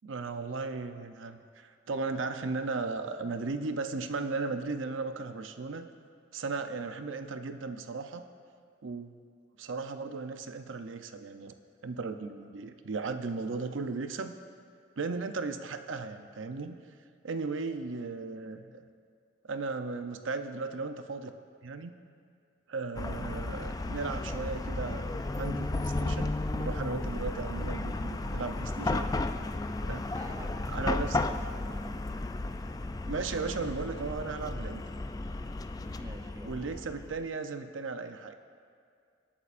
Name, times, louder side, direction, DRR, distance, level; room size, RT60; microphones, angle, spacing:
voice 1, 0.0-5.9 6.3-8.2 8.8-9.1 9.6-11.5 11.8-14.3 15.0-16.8 17.2-18.9 19.5-21.3 21.6-21.9 22.7-29.1 29.8-30.1 30.7-31.2 33.1-34.8 36.5-38.4, right 4 dB, 85° right, 8 dB, 0.6 m, -36 dB
Chatter / Car passing by / Traffic noise roadway noise, 23.0-37.2, left 2 dB, 20° left, 0.3 m, -34 dB
voice 2, 30.1-32.0 36.0-36.6, right 1 dB, 15° right, 5 dB, 0.6 m, -49 dB
26.0 x 8.7 x 2.5 m, 2.2 s
head